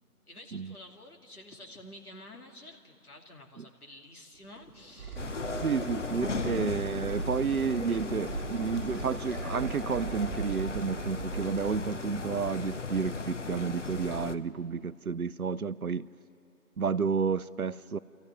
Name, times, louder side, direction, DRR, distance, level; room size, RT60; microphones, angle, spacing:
voice 1, 0.3-5.3, left 1 dB, 70° left, 2 dB, 2.7 m, -50 dB
sound 1, 4.4-12.3, right 3 dB, 15° right, 1.8 m, -40 dB
sound 2, 5.2-14.4, left 3 dB, 50° left, 0.8 m, -36 dB
voice 2, 5.6-16.1 16.8-18.0, right 6 dB, 65° right, 16 dB, 0.7 m, -31 dB
27.0 x 14.0 x 9.5 m, 2.7 s
figure-of-eight pair, 155°, 46 cm